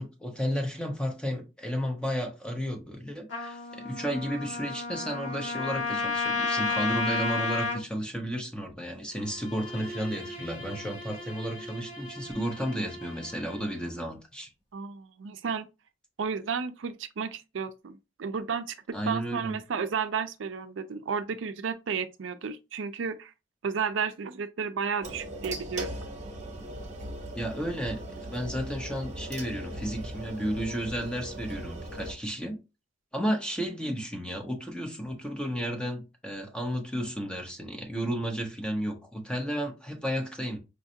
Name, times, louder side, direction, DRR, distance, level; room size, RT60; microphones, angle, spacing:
voice 1, 0.0-14.5 18.9-19.6 27.4-32.6 33.1-40.6, equal, 5° left, 0.8 m, -33 dB
Trumpet, 3.3-7.8, left 4 dB, 90° left, 1.5 m, -31 dB
Bowed string instrument, 9.1-14.0, right 1 dB, 30° left, 1.2 m, -43 dB
voice 2, 14.7-15.7 16.2-18.8 19.1-23.3 23.6-26.0, right 6 dB, 80° right, 0.5 m, -32 dB
sound 1, 25.0-32.1, right 1 dB, 40° right, 0.8 m, -39 dB
5.1 x 2.4 x 2.7 m
head